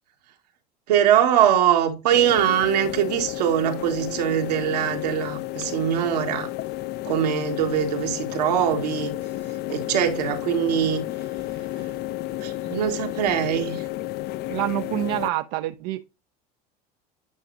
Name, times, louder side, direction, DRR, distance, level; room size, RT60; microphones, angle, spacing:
voice 1, 0.9-6.5 7.0-9.1 9.7-11.0 12.4-13.8, right 9 dB, 90° right, 1.7 m, -22 dB
sound 1, 2.1-15.3, left 16 dB, 55° left, 0.5 m, -32 dB
voice 2, 14.5-16.0, right 16 dB, 70° right, 0.6 m, -27 dB
9.5 x 5.9 x 2.6 m
supercardioid pair, 90°, 20 cm